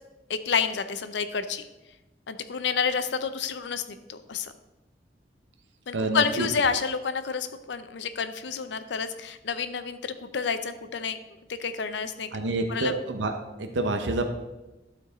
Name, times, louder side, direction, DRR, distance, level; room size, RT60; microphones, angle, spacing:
voice 1, 0.3-1.7 2.3-4.5 5.9-11.2 11.5-12.9, left 6 dB, 70° left, 11 dB, 0.5 m, -29 dB
voice 2, 5.9-6.5 12.3-13.3 13.6-14.3, right 2 dB, 80° right, 5 dB, 0.7 m, -27 dB
12.0 x 4.6 x 3.9 m, 1.0 s
head